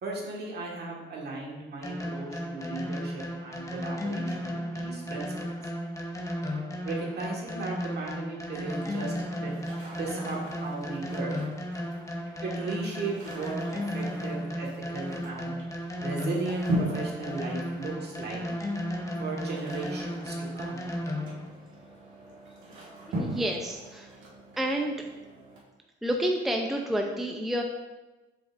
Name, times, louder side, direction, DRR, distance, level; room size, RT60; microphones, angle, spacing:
voice 1, 0.0-5.5 6.8-9.1 9.4-9.5 9.9-11.4 12.4-15.6 16.0-18.4 19.2-20.8, right 3 dB, 55° right, -2 dB, 1.7 m, -36 dB
sound 1, 1.8-21.5, equal, 15° left, 1.0 m, -34 dB
sound 2, 8.8-25.6, equal, 75° right, 1.8 m, -40 dB
voice 2, 23.2-24.2 24.6-24.9 26.0-27.6, right 1 dB, ahead, 2 dB, 0.5 m, -29 dB
7.5 x 5.1 x 2.6 m, 1.1 s
cardioid pair, 90°, 20 cm